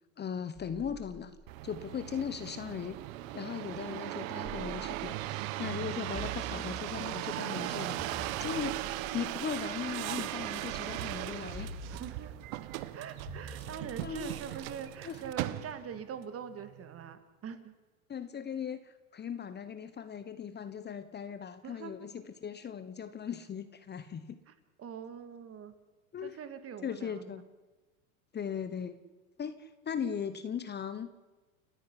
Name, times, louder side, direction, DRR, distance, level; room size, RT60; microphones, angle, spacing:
voice 1, 0.2-1.4 1.6-3.0 3.3-8.8 9.1-11.7 14.0-14.6 15.0-15.2 18.1-24.4 26.1-26.4 26.8-27.4 28.3-29.0 29.4-31.1, left 7 dB, 25° left, 12 dB, 1.2 m, -38 dB
sound 1, 0.5-3.3 4.4-5.5 6.1-7.3 8.0-10.2 11.5-12.6 13.3-15.4, right 1 dB, 5° left, 6.1 m, -49 dB
sound 2, 1.5-16.0 16.6-17.1, right 15 dB, 70° right, 1.4 m, -38 dB
voice 2, 11.9-12.4 12.9-17.7 21.6-21.9 24.5-25.8 26.2-27.4, right 7 dB, 35° right, 10 dB, 2.5 m, -43 dB
29.5 x 10.5 x 9.9 m, 1.2 s
supercardioid pair, 110°, 42 cm